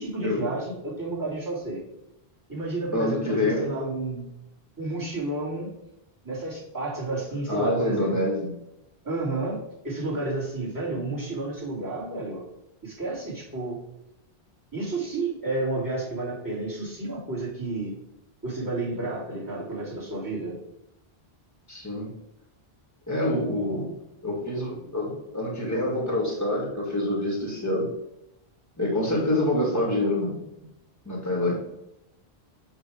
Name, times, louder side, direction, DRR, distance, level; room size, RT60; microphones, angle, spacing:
voice 1, 0.0-1.8 2.5-4.3 4.8-5.7 6.2-8.3 9.0-9.6 9.8-12.4 12.8-13.8 14.7-17.9 18.4-20.6, right 2 dB, 20° right, -8 dB, 3.0 m, -31 dB
voice 2, 2.9-3.7 7.5-8.5 21.7-22.1 23.1-23.9 24.2-27.9 28.8-30.4 31.1-31.6, left 1 dB, 15° left, -3 dB, 2.1 m, -26 dB
8.7 x 3.4 x 5.0 m, 0.86 s
omnidirectional pair, 1.0 m